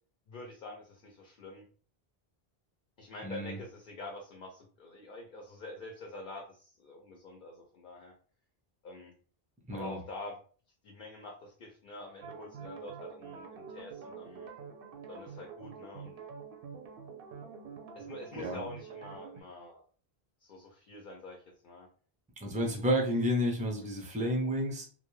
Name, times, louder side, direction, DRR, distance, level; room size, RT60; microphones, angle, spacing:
voice 1, 0.3-1.6 3.0-8.1 8.8-9.1 9.7-10.4 10.8-14.5 15.1-16.2 17.9-19.8 20.4-21.9, left 2 dB, 60° left, 1 dB, 0.7 m, -46 dB
voice 2, 3.2-3.6 9.7-10.0 18.3-18.6 22.4-24.8, equal, 10° right, 1 dB, 0.4 m, -31 dB
sound 1, 12.2-19.4, right 6 dB, 70° right, 0.7 m, -46 dB
2.5 x 2.2 x 3.0 m, 0.42 s
omnidirectional pair, 1.0 m